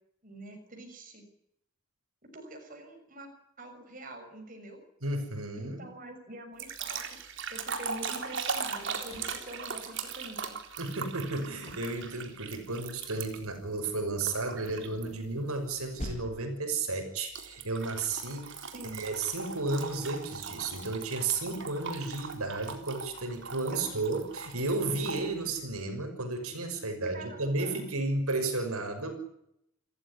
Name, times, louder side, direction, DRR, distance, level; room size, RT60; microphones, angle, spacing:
voice 1, 0.2-1.2 2.2-3.3 3.6-4.8 5.5-10.6 18.7-19.0 23.7-24.0 27.1-27.8, right 1 dB, 35° right, 4 dB, 6.5 m, -45 dB
voice 2, 5.0-5.8 10.8-18.6 18.9-29.2, right 3 dB, 80° right, 6 dB, 6.2 m, -33 dB
sound 1, 6.6-13.6 14.2-15.0 15.5-15.8 17.3-25.3, right 5 dB, 55° right, 3.9 m, -39 dB
sound 2, 9.1-10.4 11.7-12.8 14.6-15.7 16.0-16.7 19.0-19.4, equal, 30° left, 6.1 m, -45 dB
29.0 x 15.0 x 10.0 m, 0.77 s
head